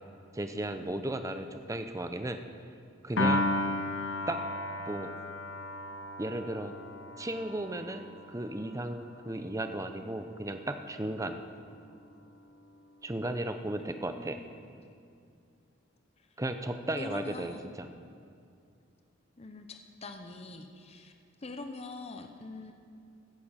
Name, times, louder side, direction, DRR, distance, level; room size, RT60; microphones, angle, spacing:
voice 1, 0.3-2.4 3.0-3.4 4.3-4.4 4.9-5.1 6.2-6.7 7.2-11.4 13.0-14.4 16.4-17.9, right 1 dB, 15° right, 8 dB, 0.7 m, -35 dB
Piano, 3.2-9.6, left 1 dB, 75° left, 1.0 m, -34 dB
voice 2, 14.0-14.5 16.2-16.3 16.9-17.7 19.4-21.1 21.4-22.7, left 2 dB, 30° left, 6 dB, 0.8 m, -43 dB
15.5 x 10.0 x 5.8 m, 2.4 s
head